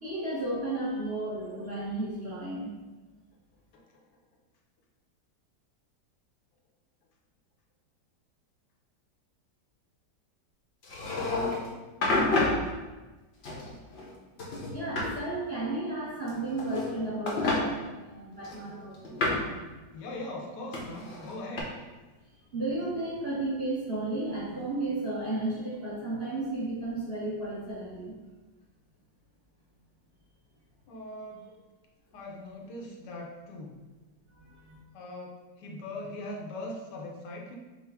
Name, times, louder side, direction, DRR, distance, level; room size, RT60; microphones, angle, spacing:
voice 1, 0.0-2.7 14.7-19.3 19.8-19.9 22.5-28.1 34.4-34.8, right 2 dB, 45° right, -8 dB, 0.9 m, -33 dB
voice 2, 3.7-4.0 19.9-21.7 30.9-31.5 32.1-33.8 34.9-37.5, left 1 dB, 75° left, -1 dB, 1.3 m, -40 dB
sound 1, 10.8-11.7 12.0-12.6 13.4-14.1 14.4-15.1 16.3-16.9 17.3-17.6 18.4-19.5 20.7-21.6, left 2 dB, 55° left, 0.7 m, -29 dB
5.5 x 2.0 x 3.4 m, 1.2 s
omnidirectional pair, 1.9 m